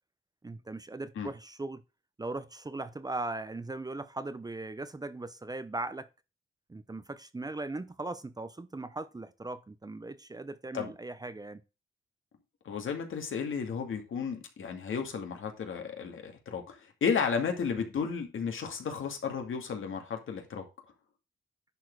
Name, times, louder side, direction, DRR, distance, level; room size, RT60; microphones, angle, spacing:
voice 1, 0.4-1.8 2.2-6.1 6.7-11.6, right 2 dB, 20° right, 0.7 m, -39 dB
voice 2, 12.6-20.6, left 6 dB, 75° left, 2.3 m, -33 dB
10.5 x 4.5 x 4.8 m
wide cardioid pair, 115°, 21 cm